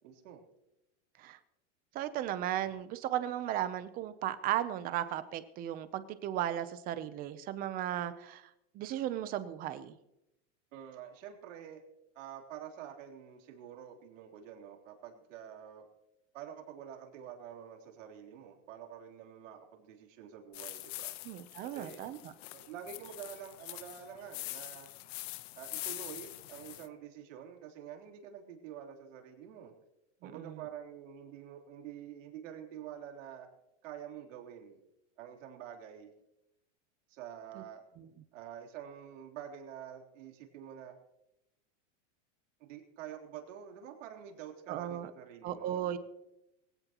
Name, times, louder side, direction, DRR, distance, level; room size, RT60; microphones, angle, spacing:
voice 1, 0.0-0.4 10.7-11.8 12.2-15.9 16.3-21.1 21.6-22.0 22.5-24.9 25.6-29.7 30.2-33.5 33.8-34.8 35.2-36.1 37.1-37.8 38.3-41.0 42.6-46.0, right 9 dB, 80° right, 1 dB, 3.7 m, -47 dB
voice 2, 1.9-8.4 8.7-10.0 21.2-22.3 30.2-30.6 37.6-37.7 38.0-38.1 44.7-45.1 45.4-46.0, right 12 dB, 25° right, 12 dB, 0.7 m, -36 dB
sound 1, 20.5-26.9, left 16 dB, 55° left, 1.0 m, -44 dB
22.0 x 16.5 x 3.0 m, 0.91 s
supercardioid pair, 170°, 37 cm